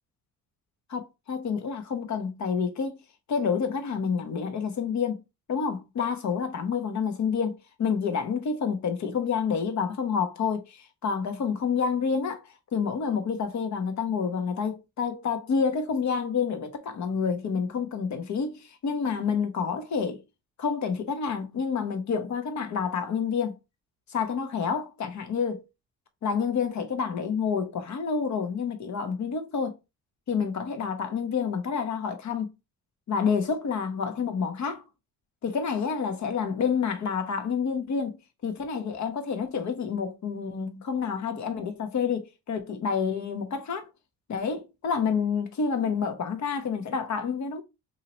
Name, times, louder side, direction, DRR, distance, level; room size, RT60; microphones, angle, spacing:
voice 1, 0.9-3.0 3.3-5.2 5.5-20.2 20.6-23.6 24.1-25.6 26.2-29.8 30.3-32.5 33.1-34.8 35.4-43.9 44.3-47.6, left 6 dB, 50° left, 0.9 m, -28 dB
2.9 x 2.7 x 2.9 m
supercardioid pair, 65°, 37 cm